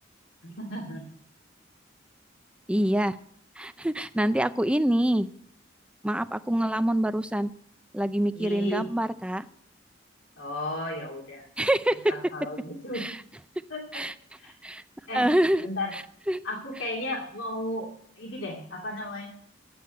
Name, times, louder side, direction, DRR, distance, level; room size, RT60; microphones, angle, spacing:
voice 1, 0.4-1.1 8.3-8.9 10.4-11.4 12.1-13.1 13.7-14.0 14.4-14.5 15.1-15.3 15.6-16.0 16.4-17.9 18.2-19.3, left 1 dB, 85° left, -1 dB, 2.5 m, -34 dB
voice 2, 2.7-3.2 3.6-5.3 6.0-7.5 7.9-9.5 11.6-12.0 12.9-13.2 13.9-14.1 14.6-14.8 15.1-15.7 16.3-16.4, right 1 dB, 5° right, 12 dB, 0.5 m, -25 dB
9.5 x 8.1 x 9.0 m, 0.65 s
head